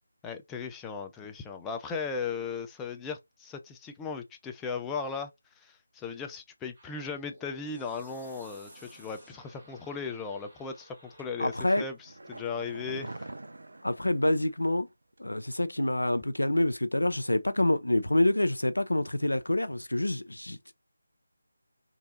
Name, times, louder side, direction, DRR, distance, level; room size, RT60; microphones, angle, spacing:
voice 1, 0.2-5.3 5.6-13.3, left 5 dB, 10° left, 0.3 m, -37 dB
sound 1, 6.7-11.8, right 1 dB, 35° right, 1.3 m, -54 dB
sound 2, 11.2-14.9 15.2-15.3, right 2 dB, 65° right, 0.4 m, -45 dB
voice 2, 11.4-11.8 13.8-14.9 15.2-20.7, left 1 dB, 75° left, 0.5 m, -27 dB
3.1 x 2.7 x 2.4 m
figure-of-eight pair, 155°, 0 cm